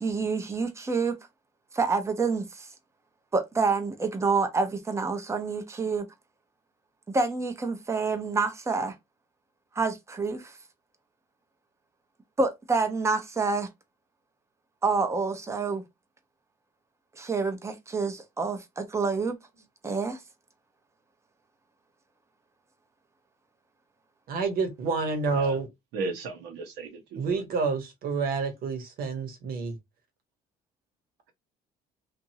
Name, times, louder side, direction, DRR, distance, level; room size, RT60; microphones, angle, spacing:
voice 1, 0.0-1.2 1.7-2.7 3.3-6.1 7.1-8.9 9.7-10.5 12.4-13.7 14.8-15.8 17.2-19.4 19.8-20.2, right 4 dB, 15° right, 0.7 m, -27 dB
voice 2, 24.3-25.7 27.2-29.7, right 4 dB, 60° right, 1.1 m, -28 dB
voice 3, 25.9-27.4, right 3 dB, 85° right, 0.9 m, -35 dB
2.9 x 2.5 x 2.7 m
cardioid pair, 110°, 17 cm